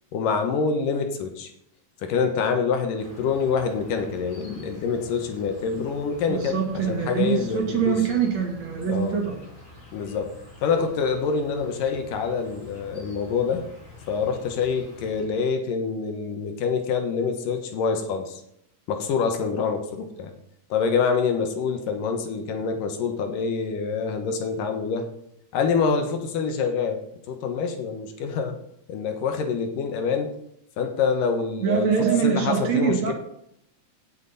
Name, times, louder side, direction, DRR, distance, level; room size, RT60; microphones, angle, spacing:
voice 1, 0.1-1.5 2.0-8.0 8.8-9.2 9.9-10.4 10.6-13.6 14.1-18.4 18.9-20.3 20.7-25.1 25.5-27.0 27.3-28.6 28.9-30.3 30.8-33.1, left 5 dB, 75° left, 5 dB, 2.9 m, -26 dB
Insect, 3.0-15.2, left 2 dB, 55° left, 5.6 m, -47 dB
voice 2, 6.3-9.4 31.6-33.1, right 7 dB, 55° right, 2 dB, 2.9 m, -24 dB
17.0 x 7.5 x 4.2 m, 0.75 s
omnidirectional pair, 3.9 m